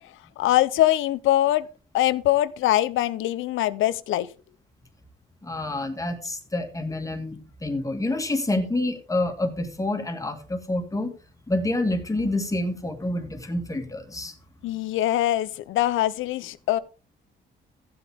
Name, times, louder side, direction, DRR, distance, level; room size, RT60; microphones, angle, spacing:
voice 1, 0.4-1.7 1.9-4.3 14.6-16.8, left 14 dB, 85° left, 0.7 m, -23 dB
voice 2, 5.4-11.1 11.5-14.3, left 2 dB, 15° left, 2.0 m, -28 dB
14.5 x 7.8 x 3.5 m
cardioid pair, 90°, 20 cm